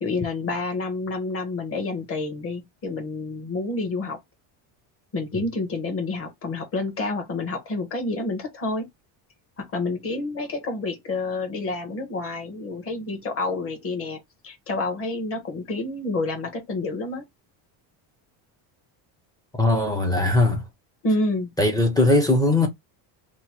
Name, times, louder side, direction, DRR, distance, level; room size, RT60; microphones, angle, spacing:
voice 1, 0.0-4.2 5.1-8.9 9.6-17.2 21.0-21.5, left 2 dB, 30° left, 0.9 m, -28 dB
voice 2, 19.6-20.6 21.6-22.7, left 2 dB, 10° left, 0.4 m, -20 dB
2.9 x 2.1 x 2.8 m
cardioid pair, 150°, 46 cm